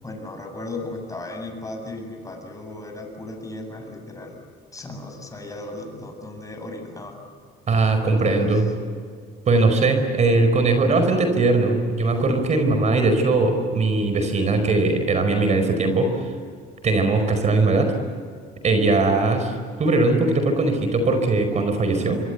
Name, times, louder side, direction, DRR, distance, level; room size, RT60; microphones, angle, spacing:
voice 1, 0.0-4.4 4.7-7.2 8.0-8.6, left 2 dB, 20° left, 3 dB, 7.6 m, -36 dB
voice 2, 7.7-8.7 9.5-16.3 16.8-17.9 18.6-19.5 19.8-22.2, right 3 dB, 40° right, 7 dB, 5.0 m, -20 dB
26.0 x 24.5 x 8.3 m, 2.1 s
cardioid pair, 110°, 17 cm